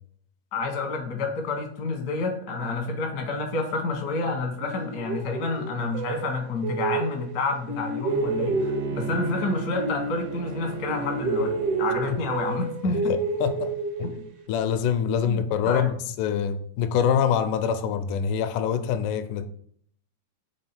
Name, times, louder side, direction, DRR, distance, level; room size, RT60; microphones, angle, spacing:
voice 1, 0.5-11.5 11.8-13.0 14.0-14.1 15.2-15.9, left 3 dB, 70° left, 2 dB, 0.9 m, -29 dB
sound 1, 4.6-7.4 7.7-10.6 10.9-14.4, right 3 dB, 70° right, 1.5 m, -30 dB
Bowed string instrument, 8.1-12.6, right 6 dB, 90° right, 2.4 m, -35 dB
voice 2, 12.8-13.7 14.0-14.1 14.5-19.5, left 8 dB, 85° left, 10 dB, 2.1 m, -25 dB
7.1 x 3.4 x 4.4 m, 0.63 s
omnidirectional pair, 3.6 m